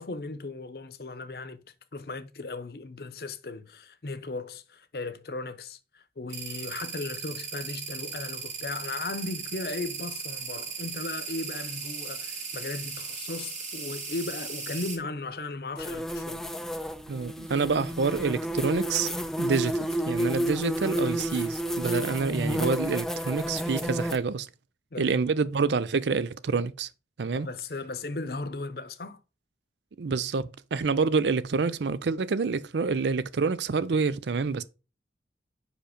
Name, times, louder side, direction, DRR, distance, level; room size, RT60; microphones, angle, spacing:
voice 1, 0.0-16.6 24.9-25.2 27.3-29.2, left 3 dB, 60° left, 0.7 m, -37 dB
sound 1, 6.3-15.0, right 5 dB, 45° right, 2.0 m, -37 dB
sound 2, 15.8-24.2, equal, 5° left, 0.3 m, -31 dB
voice 2, 17.1-19.1 19.4-24.5 25.0-26.9 27.2-27.5 30.0-34.6, right 4 dB, 85° right, 0.5 m, -27 dB
5.1 x 5.0 x 5.0 m
head